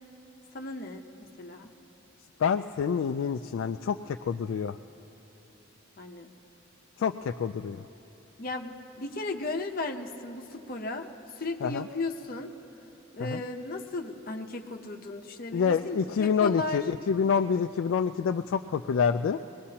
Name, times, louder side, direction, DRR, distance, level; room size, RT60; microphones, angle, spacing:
voice 1, 0.5-1.7 6.0-6.3 8.4-11.1 11.4-12.5 13.1-16.8, left 2 dB, 45° left, 4 dB, 0.8 m, -35 dB
voice 2, 2.4-4.8 7.0-7.8 11.6-11.9 13.2-13.4 15.5-19.4, left 6 dB, 65° left, 7 dB, 0.3 m, -27 dB
24.5 x 19.5 x 2.9 m, 3.0 s
head